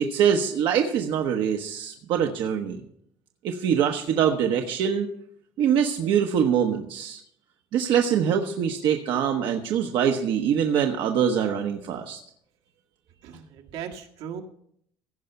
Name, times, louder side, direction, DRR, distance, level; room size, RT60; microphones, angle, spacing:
voice 1, 0.0-2.8 3.4-5.1 5.6-7.2 7.7-12.2, right 8 dB, 65° right, 3 dB, 1.0 m, -24 dB
voice 2, 13.2-14.4, right 8 dB, 85° right, 1 dB, 1.8 m, -38 dB
16.0 x 5.6 x 6.9 m, 0.69 s
cardioid pair, 120°, 9 cm